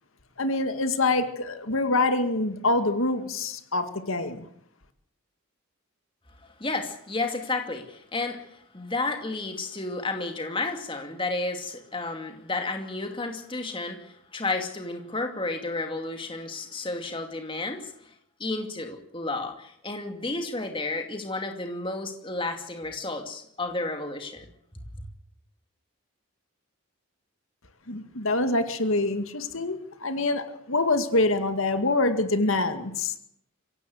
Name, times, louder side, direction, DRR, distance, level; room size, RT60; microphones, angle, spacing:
voice 1, 0.4-4.5 27.9-33.2, left 2 dB, 75° left, 8 dB, 2.1 m, -25 dB
voice 2, 6.4-18.1 18.4-24.5 24.9-25.0, left 2 dB, 25° left, 5 dB, 2.4 m, -32 dB
23.5 x 17.0 x 8.1 m, 0.70 s
head